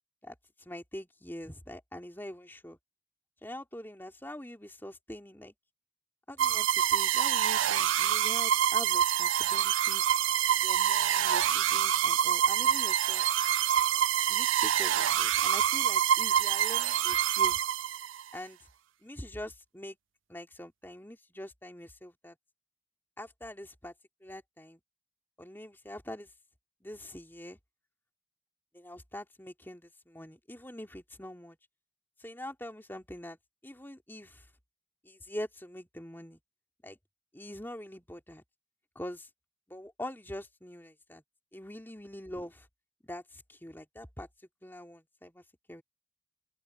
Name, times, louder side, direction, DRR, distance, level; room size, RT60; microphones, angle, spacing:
voice 1, 0.2-2.8 3.4-5.5 6.3-10.1 10.6-13.3 14.3-17.6 18.3-18.6 19.0-20.0 20.3-22.4 23.2-23.9 24.2-24.8 25.4-26.3 26.8-27.6 28.7-31.6 32.2-33.4 33.6-34.5 35.0-36.4 36.8-37.0 37.3-38.4 38.9-39.3 39.7-41.2 41.5-42.7 43.0-44.3 44.6-45.8, left 1 dB, 10° left, 2.7 m, -44 dB
sound 1, 6.4-18.2, right 10 dB, 80° right, 0.5 m, -26 dB
open air
head